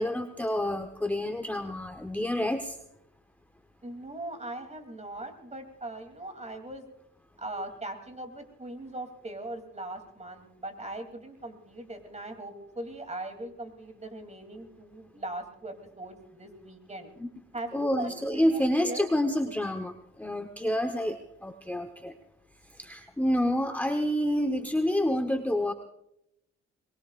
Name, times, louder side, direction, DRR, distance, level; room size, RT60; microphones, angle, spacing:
voice 1, 0.0-2.8 17.2-17.3 17.7-22.1 22.8-25.7, left 1 dB, 5° left, 5 dB, 1.0 m, -28 dB
voice 2, 3.8-6.8 7.4-17.1 17.5-19.1, right 1 dB, 20° right, 6 dB, 3.0 m, -40 dB
23.0 x 21.5 x 2.5 m, 0.80 s
cardioid pair, 90°, 30 cm